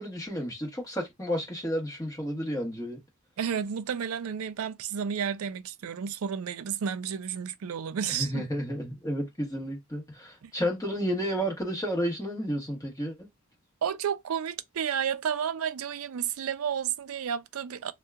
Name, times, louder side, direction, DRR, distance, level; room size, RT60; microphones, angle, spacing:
voice 1, 0.0-3.0 8.1-13.2, equal, 15° left, 1.2 m, -31 dB
voice 2, 3.4-8.4 10.4-10.5 13.8-17.9, right 7 dB, 70° right, 0.4 m, -31 dB
2.8 x 2.2 x 3.4 m
head